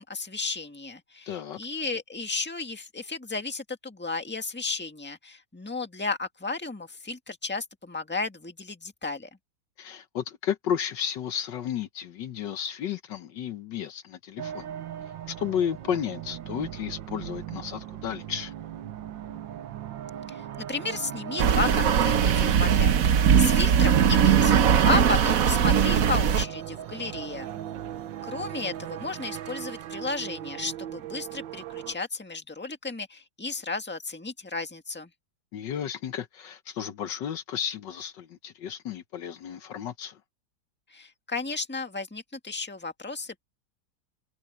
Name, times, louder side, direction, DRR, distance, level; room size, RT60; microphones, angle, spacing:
voice 1, 0.0-9.3 20.3-24.5 24.8-27.5 28.2-35.1 40.9-43.4, left 3 dB, 5° left, 1.6 m, -33 dB
voice 2, 1.3-1.6 9.8-14.7 15.3-18.5 35.5-40.2, left 9 dB, 70° left, 1.5 m, -33 dB
sound 1, 14.4-32.0, right 10 dB, 75° right, 1.6 m, -38 dB
sound 2, 21.4-26.4, right 8 dB, 55° right, 1.1 m, -20 dB
omnidirectional pair, 2.1 m